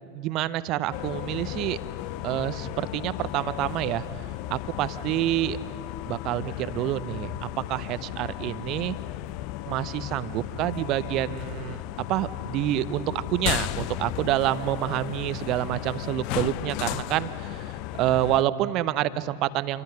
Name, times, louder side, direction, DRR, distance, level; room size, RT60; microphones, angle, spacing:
voice 1, 0.1-1.8 2.2-4.0 4.5-5.6 6.1-9.0 9.7-11.8 12.1-19.8, right 13 dB, 40° right, 15 dB, 0.9 m, -27 dB
sound 1, 0.9-18.4, left 16 dB, 45° left, 0.5 m, -35 dB
27.5 x 25.0 x 5.7 m, 2.5 s
figure-of-eight pair, 90°, 0 cm